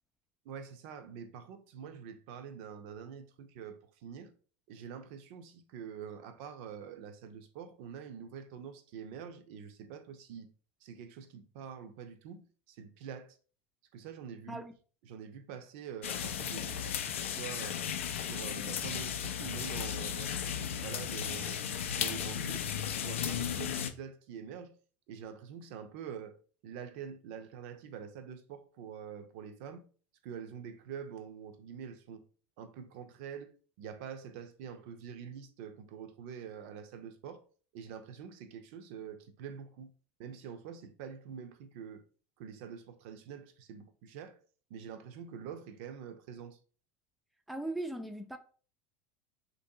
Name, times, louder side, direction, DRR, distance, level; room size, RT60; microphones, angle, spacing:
voice 1, 0.4-4.3 4.7-10.5 10.8-13.4 13.9-14.6 15.0-17.8 18.2-22.7 23.0-24.8 25.1-26.4 26.6-29.8 30.2-32.2 32.6-33.5 33.8-37.4 37.7-39.9 40.2-42.0 42.4-44.4 44.7-46.6, right 7 dB, 70° right, 0.5 m, -46 dB
sound 1, 16.0-23.9, left 8 dB, 90° left, 0.3 m, -35 dB
voice 2, 47.5-48.4, right 1 dB, ahead, 0.3 m, -38 dB
3.2 x 2.6 x 2.7 m
hypercardioid pair, 85°, 7 cm